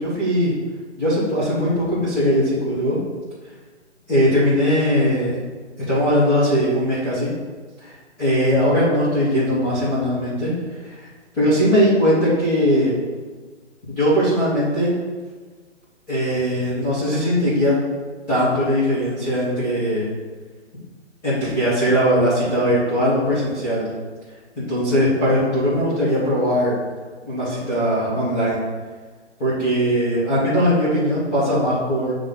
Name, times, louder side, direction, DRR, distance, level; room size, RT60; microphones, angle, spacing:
voice 1, 0.0-0.5 1.0-3.0 4.1-5.4 5.9-7.3 7.8-10.5 10.8-10.9 11.4-12.9 13.9-14.9 16.1-17.7 18.3-20.1 21.2-23.9 24.5-26.7 27.2-28.6 29.4-32.1, equal, 15° left, -13 dB, 1.5 m, -20 dB
7.6 x 3.4 x 3.9 m, 1.4 s
hypercardioid pair, 165°, 35 cm